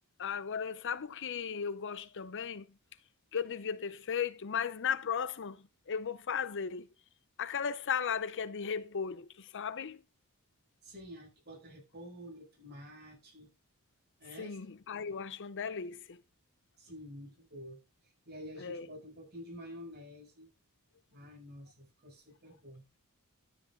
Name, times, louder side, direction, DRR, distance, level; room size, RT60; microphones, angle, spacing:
voice 1, 0.2-2.6 3.3-6.9 7.4-10.0 14.4-16.2 18.6-18.9, left 7 dB, 60° left, 0.6 m, -36 dB
voice 2, 10.8-13.5 14.2-14.7 16.8-20.5 21.1-22.8, equal, 50° right, 7.3 m, -49 dB
13.0 x 7.5 x 3.8 m
head